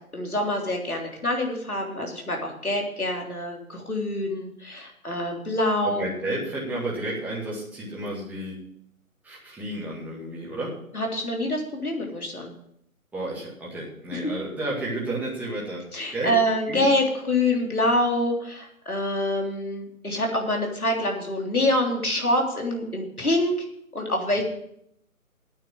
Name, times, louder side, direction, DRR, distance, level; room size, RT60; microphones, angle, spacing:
voice 1, 0.1-6.0 10.9-12.5 15.9-23.7 23.9-24.4, left 1 dB, 85° left, 1 dB, 3.4 m, -26 dB
voice 2, 5.8-8.6 9.2-10.8 13.1-15.9 16.1-16.4 16.7-16.9, right 1 dB, 5° right, -5 dB, 2.0 m, -31 dB
9.0 x 7.3 x 9.0 m, 0.72 s
figure-of-eight pair, 145°, 43 cm